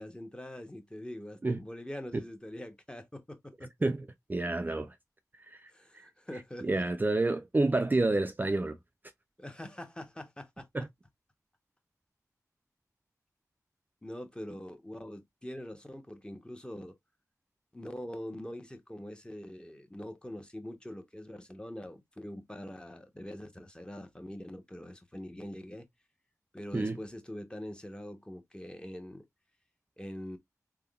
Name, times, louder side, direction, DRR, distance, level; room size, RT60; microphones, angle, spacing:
voice 1, 0.0-3.7 5.7-6.8 9.4-10.7 14.0-17.0 17.7-25.9 26.5-29.2 30.0-30.4, left 1 dB, 15° left, 0.8 m, -43 dB
voice 2, 3.8-5.0 5.5-6.0 6.6-8.8 10.7-10.9 26.7-27.0, right 2 dB, 30° right, 0.3 m, -29 dB
3.5 x 2.1 x 2.3 m
cardioid pair, 40°, 6 cm